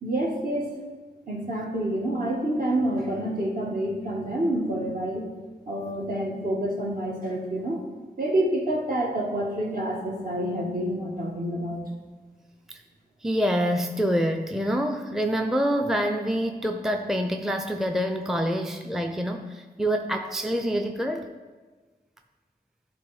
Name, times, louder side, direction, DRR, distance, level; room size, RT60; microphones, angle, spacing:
voice 1, 0.0-0.7 1.3-5.3 5.7-7.8 8.2-11.8, right 1 dB, 55° right, -2 dB, 1.7 m, -28 dB
voice 2, 13.2-21.3, equal, ahead, 5 dB, 0.5 m, -26 dB
11.0 x 3.8 x 4.8 m, 1.4 s
wide cardioid pair, 60°, 17 cm